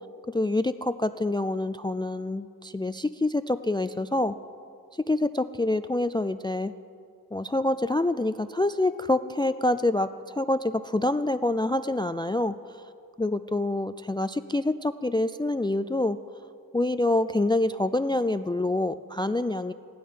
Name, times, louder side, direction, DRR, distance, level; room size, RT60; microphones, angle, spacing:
voice 1, 0.3-4.4 5.0-6.7 7.3-12.6 13.2-16.2 16.7-19.7, left 2 dB, 15° left, 12 dB, 0.3 m, -26 dB
15.0 x 12.5 x 5.8 m, 2.3 s
wide cardioid pair, 60°, 38 cm